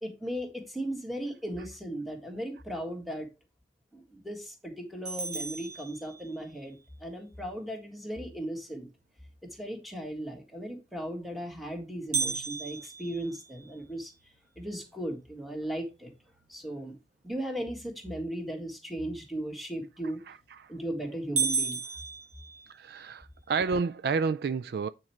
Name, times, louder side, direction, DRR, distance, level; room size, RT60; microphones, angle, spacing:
voice 1, 0.0-3.3 3.9-8.9 9.5-14.1 14.6-16.1 16.5-17.0 17.2-20.2 20.7-21.8, right 1 dB, ahead, 1.8 m, -37 dB
sound 1, 5.0-6.6 12.1-14.3 14.8-14.9 15.4-15.5 16.1-16.5 20.1-20.5 20.9-21.0 21.4-23.1, right 4 dB, 45° right, 1.5 m, -34 dB
voice 2, 20.3-20.7 22.7-24.9, right 5 dB, 60° right, 0.3 m, -30 dB
8.9 x 4.6 x 4.3 m
head